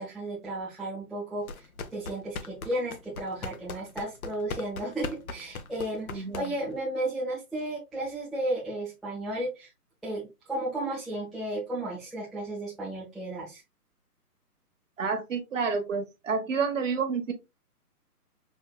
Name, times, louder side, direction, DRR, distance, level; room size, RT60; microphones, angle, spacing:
voice 1, 0.0-9.7 10.0-13.6, right 1 dB, ahead, 0.4 m, -34 dB
sound 1, 1.4-6.8, left 4 dB, 65° left, 0.8 m, -40 dB
voice 2, 6.1-6.5 15.0-17.3, right 5 dB, 50° right, 1.2 m, -29 dB
5.4 x 3.1 x 2.2 m
hypercardioid pair, 160°, 47 cm